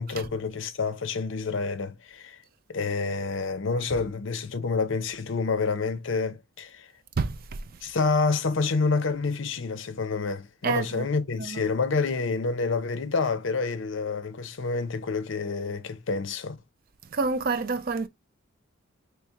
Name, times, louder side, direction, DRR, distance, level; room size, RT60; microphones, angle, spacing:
voice 1, 0.0-2.4 2.7-6.9 7.8-16.6, left 4 dB, 65° left, 0.6 m, -28 dB
voice 2, 7.2-7.6 10.6-11.1 11.4-11.6 17.1-18.1, right 4 dB, 45° right, 0.4 m, -28 dB
3.2 x 3.2 x 3.4 m
head